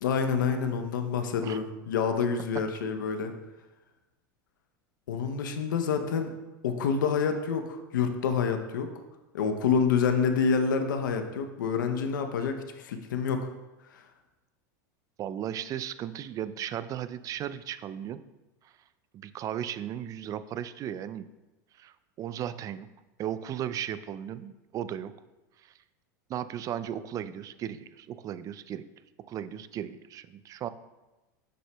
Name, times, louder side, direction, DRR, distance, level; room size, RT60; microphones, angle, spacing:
voice 1, 0.0-3.3 5.1-6.3 6.6-8.9 9.3-13.5 13.9-14.0, left 6 dB, 90° left, 7 dB, 0.7 m, -27 dB
voice 2, 15.2-18.2 19.1-21.3 21.8-22.9 23.2-25.1 25.6-25.7 26.3-28.8 29.3-30.7, right 10 dB, 35° right, 14 dB, 0.4 m, -36 dB
7.7 x 6.4 x 2.2 m, 1.1 s
supercardioid pair, 110°, 10 cm